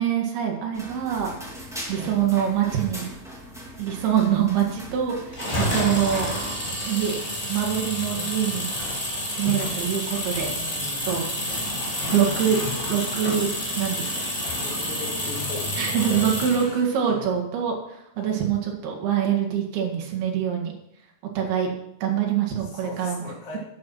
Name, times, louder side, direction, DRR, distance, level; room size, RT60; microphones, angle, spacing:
voice 1, 0.0-1.3 1.9-3.1 3.8-6.3 6.9-7.2 7.5-8.7 9.3-10.5 10.8-11.3 12.1-12.6 12.9-13.5 13.8-14.1 14.4-14.5 15.8-20.7 21.4-21.7 22.0-23.2, right 9 dB, 75° right, 1 dB, 3.8 m, -25 dB
sound 1, 0.7-6.5, equal, ahead, 0.7 m, -40 dB
voice 2, 1.9-2.4 5.4-5.9 8.1-8.5 10.5-11.6 14.6-16.3 16.6-17.3 18.2-18.5 22.6-23.6, left 3 dB, 60° left, -4 dB, 4.6 m, -40 dB
sound 2, 5.3-16.7, equal, 15° left, 4.7 m, -29 dB
11.0 x 7.6 x 5.6 m, 0.79 s
omnidirectional pair, 4.6 m